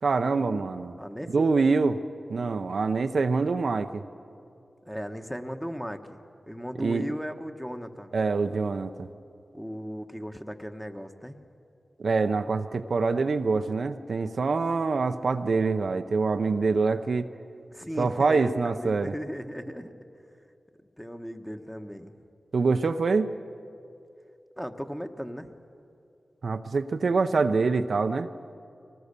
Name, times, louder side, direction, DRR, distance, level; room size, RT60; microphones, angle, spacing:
voice 1, 0.0-0.9 1.3-2.0 2.3-4.0 6.8-7.1 8.1-9.1 12.0-17.3 18.0-19.1 22.5-23.3 26.4-28.3, right 4 dB, 70° right, 8 dB, 0.6 m, -25 dB
voice 2, 1.0-1.5 4.8-8.1 9.5-11.4 17.7-19.9 21.0-22.2 24.6-25.5, equal, 5° left, 6 dB, 1.2 m, -37 dB
24.0 x 19.0 x 6.8 m, 2.6 s
cardioid pair, 50°, 0 cm